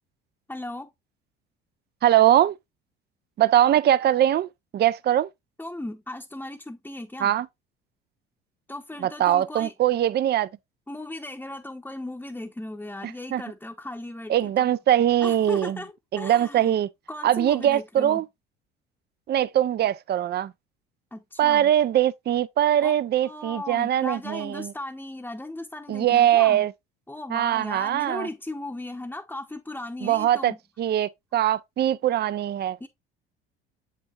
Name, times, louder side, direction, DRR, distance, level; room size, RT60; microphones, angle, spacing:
voice 1, 0.5-0.9 5.6-7.3 8.7-9.7 10.9-14.8 15.2-16.7 17.1-18.2 21.1-21.7 22.8-22.9 23.2-26.7 27.1-30.6 32.8-32.9, left 1 dB, 5° left, 0.9 m, -37 dB
voice 2, 2.0-2.6 3.4-5.3 7.2-7.5 9.0-10.5 13.3-13.4 14.3-15.8 16.1-16.9 17.2-18.3 19.3-20.5 21.4-24.7 25.9-26.7 27.3-28.3 30.0-32.8, right 11 dB, 35° right, 0.5 m, -22 dB
7.9 x 5.7 x 2.4 m
hypercardioid pair, 60°, 29 cm